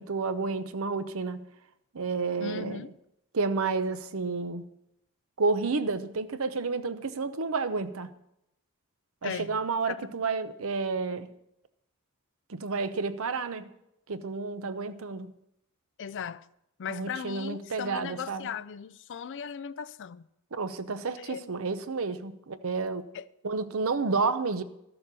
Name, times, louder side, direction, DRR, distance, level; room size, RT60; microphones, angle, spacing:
voice 1, 0.0-1.4 1.9-2.9 3.3-4.6 5.4-8.1 9.2-11.3 12.5-13.7 14.1-15.3 16.9-18.5 20.5-23.0 23.4-24.6, right 4 dB, 65° right, 0.8 m, -30 dB
voice 2, 2.4-2.9 9.2-9.6 9.9-10.1 16.0-16.5 16.8-20.2 21.2-21.4 23.1-23.2, left 7 dB, 55° left, 0.4 m, -37 dB
13.0 x 7.0 x 6.8 m
head